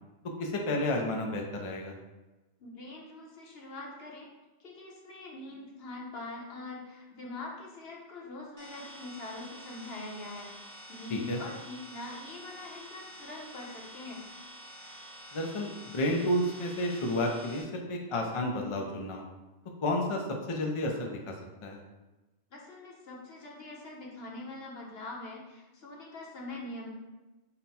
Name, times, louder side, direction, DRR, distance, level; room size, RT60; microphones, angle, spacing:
voice 1, 0.4-1.9 11.1-11.4 15.3-19.3 19.8-20.2 20.5-21.3 21.6-21.8, left 1 dB, 40° left, 1 dB, 0.4 m, -31 dB
voice 2, 2.6-4.3 4.6-10.5 10.9-14.2 22.5-26.9, left 2 dB, 60° left, -2 dB, 1.2 m, -43 dB
sound 1, 8.6-17.6, equal, 45° right, 1.2 m, -48 dB
5.7 x 2.2 x 4.2 m, 1.1 s
omnidirectional pair, 1.2 m